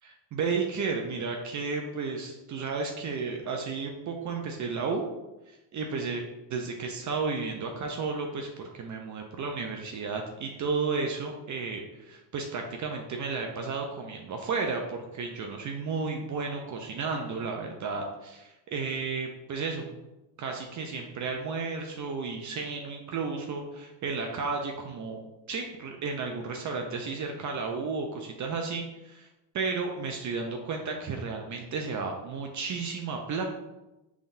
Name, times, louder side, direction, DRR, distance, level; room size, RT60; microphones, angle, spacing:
voice 1, 0.0-5.0 5.7-6.2 6.5-20.0 20.4-25.2 25.5-29.3 29.5-33.4, right 4 dB, 35° right, 2 dB, 0.6 m, -33 dB
5.3 x 3.6 x 2.6 m, 0.99 s
supercardioid pair, 90°, 50 cm